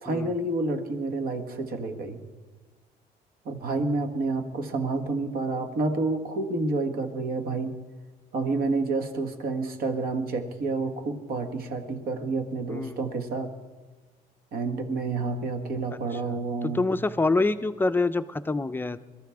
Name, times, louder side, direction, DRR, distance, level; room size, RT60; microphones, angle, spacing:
voice 1, 0.0-2.2 3.4-7.7 8.3-13.5 14.5-16.9, right 3 dB, 60° right, 6 dB, 1.5 m, -29 dB
voice 2, 12.7-13.0 16.1-16.4 16.6-19.0, left 3 dB, 10° left, 12 dB, 0.5 m, -26 dB
22.0 x 14.0 x 3.5 m, 1.3 s
cardioid pair, 110°, 17 cm